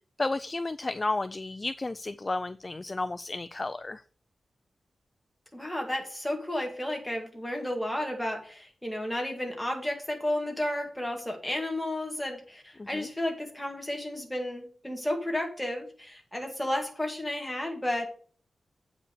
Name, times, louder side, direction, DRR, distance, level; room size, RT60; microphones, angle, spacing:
voice 1, 0.2-4.0 12.8-13.1, left 2 dB, 25° left, 12 dB, 0.3 m, -32 dB
voice 2, 5.5-18.1, left 1 dB, 5° left, 1 dB, 2.0 m, -32 dB
8.3 x 5.0 x 6.6 m, 0.43 s
wide cardioid pair, 165°, 0 cm